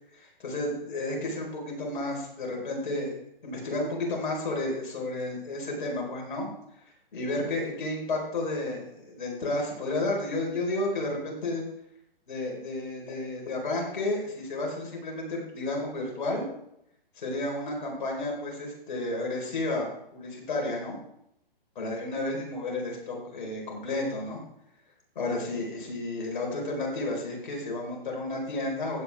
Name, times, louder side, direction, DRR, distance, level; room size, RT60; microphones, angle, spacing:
voice 1, 0.1-3.1 3.4-6.5 7.1-11.6 12.3-16.4 17.2-21.0 21.7-24.4 25.1-29.0, left 2 dB, 55° left, 0 dB, 4.8 m, -32 dB
15.5 x 8.9 x 3.6 m, 0.78 s
hypercardioid pair, 140°, 29 cm